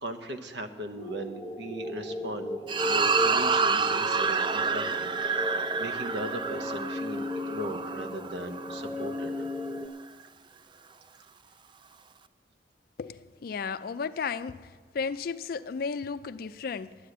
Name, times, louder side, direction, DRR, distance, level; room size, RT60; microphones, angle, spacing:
voice 1, 0.0-9.5, equal, 80° right, 1.0 m, -38 dB
sound 1, 1.0-9.9, left 1 dB, 10° right, 0.9 m, -36 dB
sound 2, 2.7-9.2, right 5 dB, 25° right, 0.3 m, -28 dB
voice 2, 13.0-14.7 14.9-17.0, left 5 dB, 55° left, 0.4 m, -34 dB
10.0 x 10.0 x 7.9 m
head